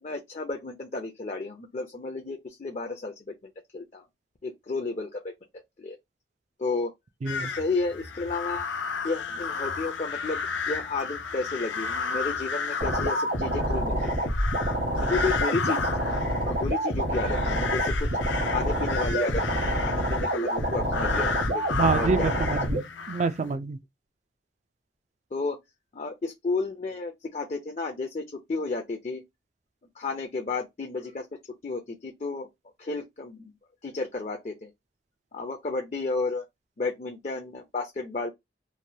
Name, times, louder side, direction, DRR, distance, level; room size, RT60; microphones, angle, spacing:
voice 1, 0.0-4.0 4.4-5.2 5.8-6.0 6.6-6.9 7.4-8.7 9.0-14.1 15.0-16.0 16.4-18.1 18.4-22.5 25.3-25.6 25.9-29.2 30.0-31.3 31.6-32.5 32.8-33.5 33.8-34.7 35.3-36.4 36.8-38.3, left 3 dB, 40° left, 0.5 m, -32 dB
voice 2, 7.2-7.5 21.7-23.8, right 4 dB, 40° right, 0.3 m, -27 dB
sound 1, 7.3-23.5, left 5 dB, 80° left, 0.6 m, -33 dB
sound 2, 12.8-22.8, right 1 dB, 60° right, 0.8 m, -27 dB
3.0 x 2.2 x 2.7 m
head